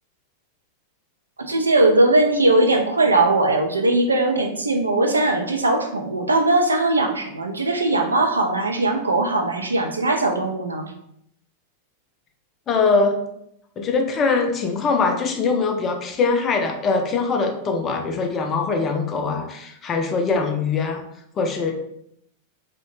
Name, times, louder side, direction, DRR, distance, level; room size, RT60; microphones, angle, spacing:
voice 1, 1.4-10.9, right 2 dB, 80° right, 3 dB, 0.3 m, -20 dB
voice 2, 12.7-13.2 13.8-21.0 21.4-21.7, left 4 dB, 25° left, 3 dB, 0.4 m, -22 dB
2.6 x 2.1 x 2.9 m, 0.75 s
figure-of-eight pair, 90°, 0 cm